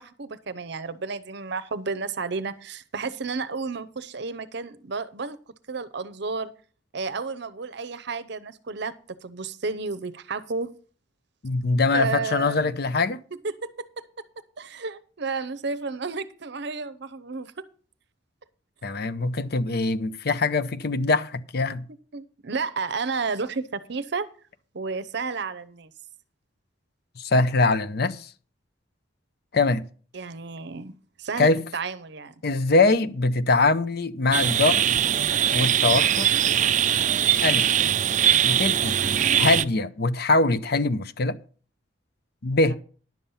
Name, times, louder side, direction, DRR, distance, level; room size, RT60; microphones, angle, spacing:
voice 1, 0.0-5.4 5.7-6.5 6.9-8.9 9.2-10.7 11.9-12.7 13.6-14.0 14.6-17.5 22.1-24.3 24.7-25.9 30.1-30.9 31.2-32.3 42.7-42.8, right 4 dB, 60° right, 0.7 m, -32 dB
voice 2, 11.4-13.2 18.8-21.9 27.2-28.3 29.5-29.8 31.4-31.6 32.4-34.8 35.5-36.3 37.4-37.7 38.4-39.0 39.4-41.4 42.4-42.8, left 3 dB, 55° left, 0.6 m, -23 dB
sound 1, 34.3-39.6, right 10 dB, 40° right, 0.4 m, -21 dB
10.5 x 7.2 x 5.5 m
head